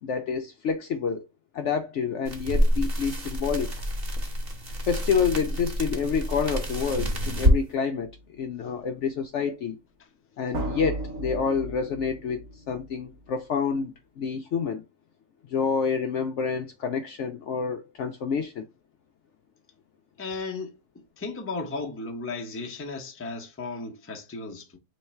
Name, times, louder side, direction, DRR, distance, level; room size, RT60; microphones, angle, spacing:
voice 1, 0.0-1.2 1.5-3.7 4.9-8.1 8.4-9.8 10.4-14.8 15.5-18.7, left 6 dB, 65° left, 0.8 m, -28 dB
sound 1, 2.2-7.6, equal, 40° right, 1.5 m, -27 dB
sound 2, 7.9-8.2 10.5-13.2, right 1 dB, 65° right, 1.3 m, -35 dB
voice 2, 20.2-20.7 21.2-24.8, left 3 dB, 15° left, 0.6 m, -35 dB
3.2 x 3.2 x 4.2 m
omnidirectional pair, 1.6 m